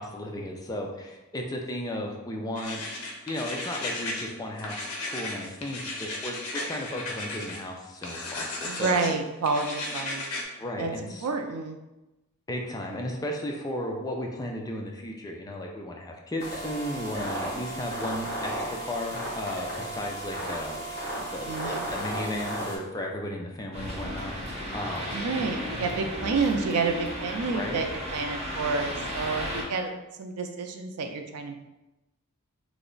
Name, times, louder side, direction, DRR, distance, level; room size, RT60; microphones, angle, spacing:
voice 1, 0.0-2.8 3.3-9.0 10.6-11.3 12.5-20.8 21.2-24.3 24.7-25.2 27.5-27.8, left 1 dB, 15° left, 1 dB, 0.3 m, -35 dB
sound 1, 2.6-4.3 4.6-7.6 8.0-9.1 9.4-10.4, left 2 dB, 75° left, 0.6 m, -35 dB
voice 2, 8.6-10.2 10.8-11.8 21.4-21.9 25.1-29.9 30.2-31.5, right 4 dB, 85° right, 5 dB, 0.4 m, -29 dB
sound 2, 16.4-22.8, right 1 dB, 50° left, 1.1 m, -34 dB
sound 3, 23.7-29.6, equal, 30° right, 0.9 m, -34 dB
3.2 x 2.0 x 3.7 m, 1.0 s
head